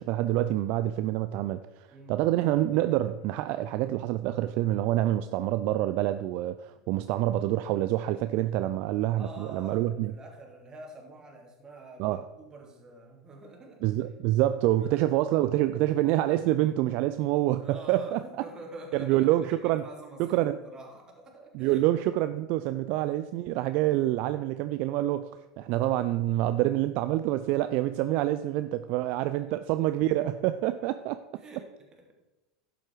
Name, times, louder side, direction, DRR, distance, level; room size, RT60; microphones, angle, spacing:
voice 1, 0.0-1.6 2.1-10.1 12.0-12.2 13.8-18.2 18.9-19.8 20.2-20.6 21.5-25.2 25.6-31.2, right 14 dB, 55° right, 12 dB, 0.4 m, -27 dB
voice 2, 1.9-2.2 9.1-13.8 14.9-15.0 17.6-21.9 29.3-29.8 30.9-31.0 31.4-32.2, right 2 dB, 25° right, 1 dB, 3.0 m, -47 dB
11.5 x 7.8 x 4.7 m, 1.1 s
hypercardioid pair, 80°, 3 cm